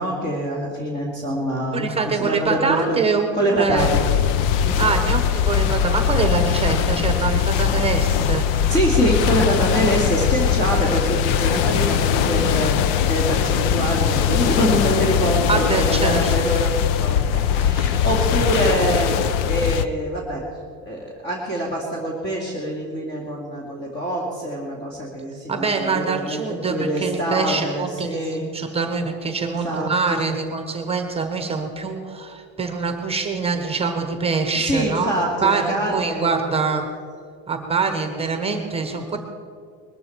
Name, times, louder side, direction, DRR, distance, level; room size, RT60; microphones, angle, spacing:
voice 1, 0.0-3.0 3.3-4.0 4.6-5.0 8.7-19.1 19.5-20.4 20.9-28.6 29.4-30.4 34.6-36.4, right 1 dB, 25° left, -3 dB, 2.4 m, -25 dB
voice 2, 1.7-3.9 4.8-8.5 15.5-16.6 25.5-35.1 35.4-36.9 37.5-39.2, right 4 dB, 15° right, 5 dB, 1.1 m, -24 dB
sound 1, 3.8-19.9, left 8 dB, 80° left, 0.8 m, -20 dB
20.5 x 14.0 x 4.6 m, 2.3 s
cardioid pair, 165°, 38 cm